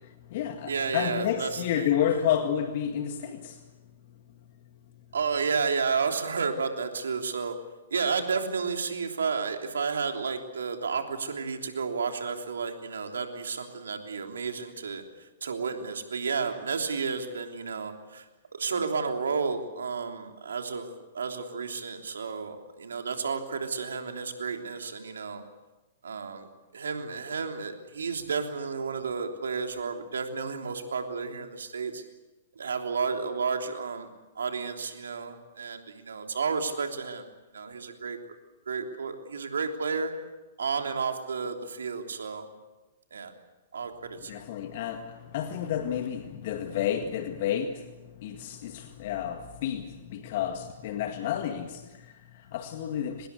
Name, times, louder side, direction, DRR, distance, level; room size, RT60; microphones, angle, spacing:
voice 1, 0.0-3.6 44.2-53.3, left 9 dB, 55° left, 6 dB, 2.0 m, -31 dB
voice 2, 0.7-1.9 5.1-7.5 7.9-15.0 15.4-18.2 18.5-25.4 26.0-26.5 26.7-32.0 32.5-34.1 34.3-37.2 37.5-38.2 38.7-40.1 40.6-42.5 43.1-43.3 43.7-43.9 44.2-44.4, right 5 dB, 75° right, 4 dB, 3.2 m, -31 dB
24.5 x 20.5 x 8.2 m, 1.1 s
hypercardioid pair, 115°, 0 cm